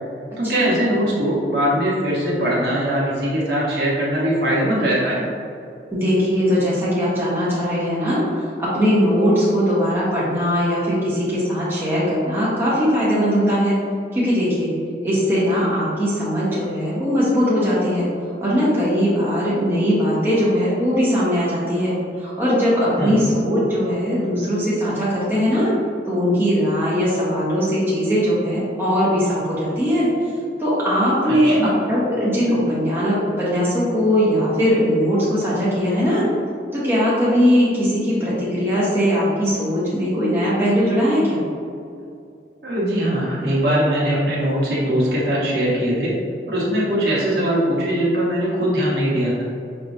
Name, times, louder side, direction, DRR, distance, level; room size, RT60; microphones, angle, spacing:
voice 1, 0.4-5.2 23.0-23.2 31.3-31.7 42.6-46.1 46.5-49.3, equal, 65° right, -7 dB, 1.2 m, -21 dB
voice 2, 5.9-13.8 14.1-14.7 15.0-18.1 18.4-25.7 26.1-30.1 30.6-36.3 36.7-41.4, equal, 15° right, -9 dB, 1.1 m, -20 dB
5.7 x 3.2 x 2.7 m, 2.5 s
head